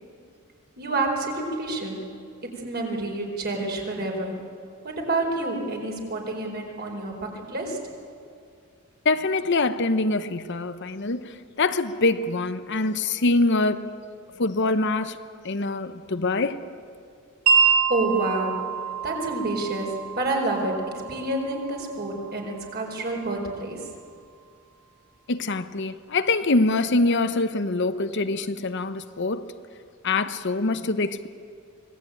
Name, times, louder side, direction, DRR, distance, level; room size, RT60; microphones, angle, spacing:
voice 1, 0.8-2.1 2.6-4.5 4.8-7.8 17.6-18.7 19.0-23.9, right 2 dB, 45° right, 4.7 m, -28 dB
voice 2, 9.0-14.0 14.4-15.2 15.4-16.6 25.3-29.5 30.0-31.3, left 2 dB, 55° left, 0.9 m, -24 dB
Wind chime, 17.5-23.5, right 6 dB, 85° right, 4.3 m, -27 dB
25.5 x 18.5 x 9.1 m
head